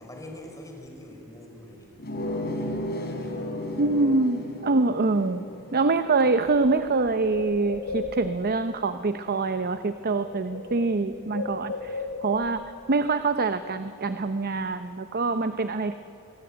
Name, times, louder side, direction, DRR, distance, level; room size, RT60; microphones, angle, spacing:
voice 1, 0.0-1.9 3.1-3.5, left 1 dB, 15° left, 1 dB, 5.2 m, -43 dB
sound 1, 2.0-7.3, left 1 dB, 45° left, 4.1 m, -34 dB
voice 2, 3.8-5.4 5.7-12.6 12.9-16.0, right 3 dB, 45° right, 10 dB, 0.8 m, -25 dB
Bird, 5.7-5.8 6.0-8.6 9.6-9.9 10.1-12.6, left 3 dB, 70° left, 4.6 m, -36 dB
25.5 x 22.0 x 8.8 m, 2.7 s
head